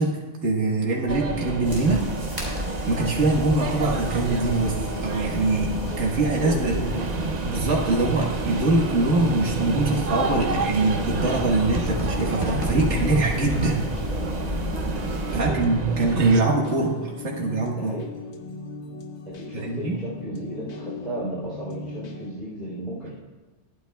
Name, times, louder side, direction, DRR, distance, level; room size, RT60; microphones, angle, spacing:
voice 1, 0.0-2.1 2.9-6.8 7.4-13.9 15.3-18.0 19.5-20.0, right 2 dB, 80° right, -2 dB, 1.8 m, -23 dB
sound 1, 1.1-16.4, right 4 dB, 45° right, 0.6 m, -30 dB
sound 2, 1.6-15.4, left 1 dB, 20° right, 3.8 m, -33 dB
sound 3, 3.4-22.3, left 3 dB, 70° left, 1.3 m, -38 dB
voice 2, 6.3-7.3 15.3-15.6 17.8-18.0 19.2-23.1, equal, 45° left, -8 dB, 3.0 m, -34 dB
22.0 x 9.4 x 2.3 m, 1.3 s
omnidirectional pair, 1.2 m